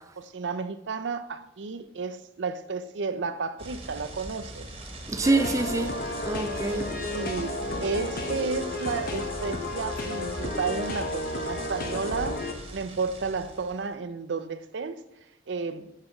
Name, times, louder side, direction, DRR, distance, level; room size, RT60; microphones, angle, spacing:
voice 1, 0.0-4.7 7.1-12.4 12.7-15.0 15.5-15.9, right 4 dB, 80° right, 0.6 m, -32 dB
sound 1, 3.6-13.9, right 1 dB, 35° right, 1.4 m, -41 dB
voice 2, 5.1-7.5 7.9-8.2, right 2 dB, 20° right, 0.3 m, -28 dB
sound 2, 5.2-12.5, left 2 dB, 55° left, 1.1 m, -32 dB
6.5 x 5.8 x 6.0 m
head